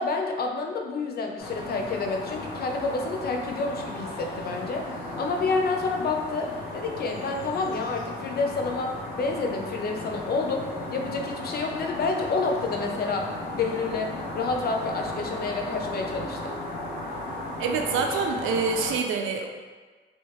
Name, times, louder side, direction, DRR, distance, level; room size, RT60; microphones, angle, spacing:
voice 1, 0.0-4.9 5.2-13.3 13.5-16.4, left 3 dB, 50° left, 2 dB, 0.6 m, -29 dB
sound 1, 1.4-19.0, left 1 dB, 80° left, 0.9 m, -35 dB
voice 2, 17.6-19.5, right 5 dB, 85° right, 3 dB, 0.5 m, -26 dB
3.2 x 3.0 x 3.1 m, 1.4 s
cardioid pair, 90°, 20 cm